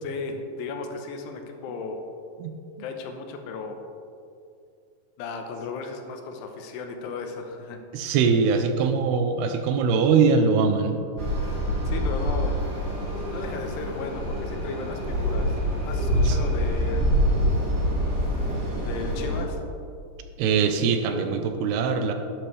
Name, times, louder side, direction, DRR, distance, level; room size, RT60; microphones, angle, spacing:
voice 1, 0.0-2.0 2.8-3.8 5.2-7.8 11.9-12.6 13.3-15.5 15.8-17.1 18.8-19.7, left 4 dB, 85° left, 4 dB, 3.0 m, -35 dB
voice 2, 7.9-11.0 16.3-16.4 20.4-22.1, right 5 dB, 80° right, 6 dB, 2.7 m, -22 dB
sound 1, 11.2-19.4, equal, 40° right, 1.5 m, -26 dB
12.0 x 9.9 x 3.3 m, 2.5 s
omnidirectional pair, 4.8 m